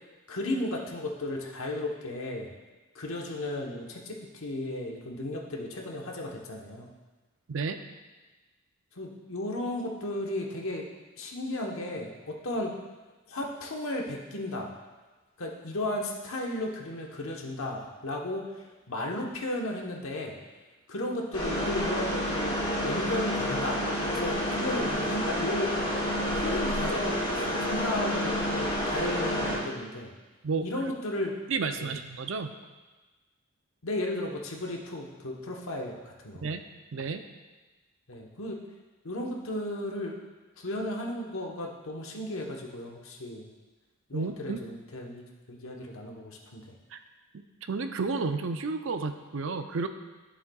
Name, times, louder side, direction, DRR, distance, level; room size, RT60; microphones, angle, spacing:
voice 1, 0.3-2.5 2.9-6.9 9.0-10.9 11.2-12.7 13.3-14.7 15.4-18.4 18.9-20.4 20.9-25.7 26.3-30.1 30.6-31.3 31.8-31.9 33.8-36.4 38.1-38.6 39.0-40.1 40.6-43.5 44.1-46.6, left 1 dB, 75° left, 0 dB, 1.1 m, -34 dB
voice 2, 7.5-7.8 30.4-30.7 31.5-32.5 36.4-36.6 36.9-37.2 44.1-44.6 46.9-47.0 47.3-49.9, right 4 dB, 65° right, 8 dB, 0.5 m, -31 dB
sound 1, 21.3-29.6, equal, 20° left, 2.3 m, -29 dB
11.5 x 7.1 x 2.3 m, 1.2 s
head